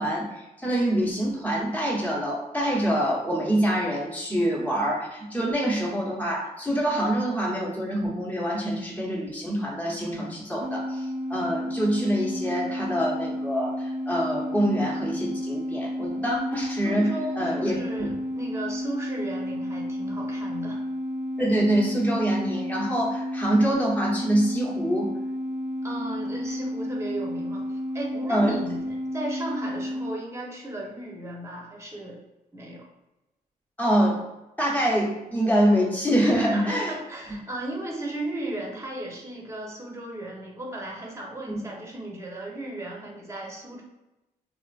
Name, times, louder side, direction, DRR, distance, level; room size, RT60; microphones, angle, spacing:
voice 1, 0.0-18.1 21.4-25.1 28.3-28.5 33.8-34.2 34.6-36.9, equal, 10° left, -4 dB, 1.2 m, -25 dB
sound 1, 10.6-30.2, left 1 dB, 55° right, 0.6 m, -31 dB
voice 2, 16.8-20.8 25.8-28.8 29.1-32.2 32.5-32.9 36.5-43.8, right 1 dB, 15° right, -2 dB, 1.0 m, -35 dB
2.9 x 2.5 x 2.5 m, 0.99 s
supercardioid pair, 55°, 17 cm